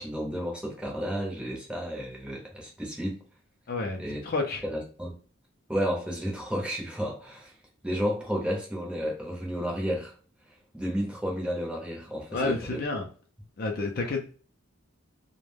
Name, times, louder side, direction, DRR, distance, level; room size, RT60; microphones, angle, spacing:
voice 1, 0.0-3.2 4.0-4.2 4.6-5.2 5.7-7.5 7.8-10.1 10.7-12.8, equal, 5° right, 0.6 m, -32 dB
voice 2, 3.7-4.6 12.3-13.1 13.6-14.2, left 3 dB, 45° left, 0.4 m, -30 dB
2.3 x 2.1 x 3.2 m
head